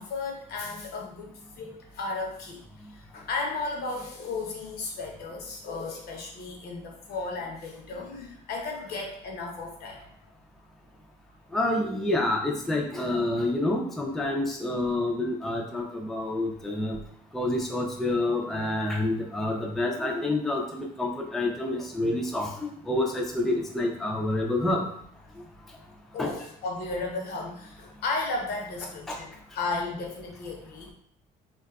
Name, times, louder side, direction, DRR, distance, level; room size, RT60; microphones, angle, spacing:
voice 1, 0.0-2.6 2.9-10.1 26.1-30.9, left 3 dB, 65° left, 0 dB, 0.7 m, -34 dB
voice 2, 11.5-17.0 17.3-24.9 26.2-26.3 29.1-29.2, left 2 dB, ahead, 0 dB, 0.3 m, -28 dB
2.6 x 2.2 x 2.2 m, 0.65 s
cardioid pair, 110°, 17 cm